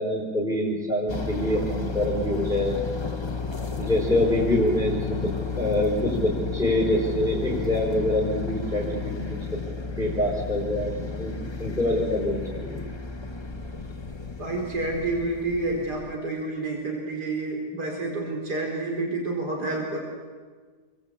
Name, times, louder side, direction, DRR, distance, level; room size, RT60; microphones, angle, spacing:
voice 1, 0.0-2.8 3.8-5.3 5.6-9.6 10.0-12.8, left 1 dB, ahead, -4 dB, 5.1 m, -25 dB
sound 1, 1.1-16.2, left 4 dB, 20° left, 1.2 m, -33 dB
voice 2, 14.4-20.0, right 2 dB, 75° right, -1 dB, 5.0 m, -29 dB
28.0 x 22.5 x 8.6 m, 1.5 s
omnidirectional pair, 1.7 m